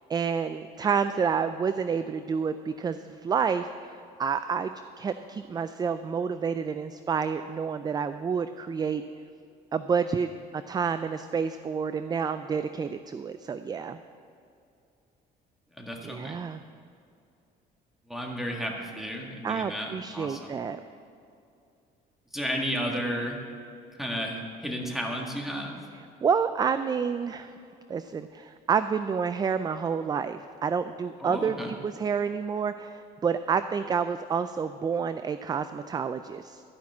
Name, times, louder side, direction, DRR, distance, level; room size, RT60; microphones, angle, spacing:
voice 1, 0.1-4.7 5.0-9.0 9.7-14.0 16.0-16.6 19.4-20.8 26.2-27.5 27.9-36.6, right 6 dB, 25° right, 11 dB, 0.4 m, -29 dB
voice 2, 15.7-16.4 18.1-20.6 22.3-23.4 24.0-25.8 31.2-31.7, equal, ahead, 0 dB, 1.9 m, -33 dB
13.0 x 5.9 x 8.4 m, 2.5 s
cardioid pair, 110°, 17 cm